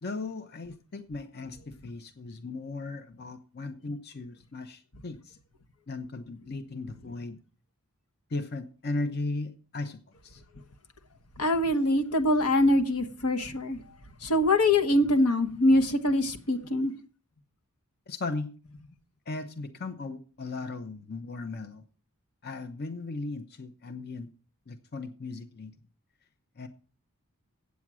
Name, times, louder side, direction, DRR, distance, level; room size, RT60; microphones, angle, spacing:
voice 1, 0.0-5.4 5.9-7.4 8.3-10.4 18.1-18.5 19.3-21.8 22.4-24.3 24.7-25.7 26.6-26.7, left 3 dB, 45° left, 0.7 m, -37 dB
voice 2, 11.4-13.8 14.2-16.9, left 1 dB, 80° left, 1.2 m, -24 dB
8.8 x 8.3 x 6.1 m
head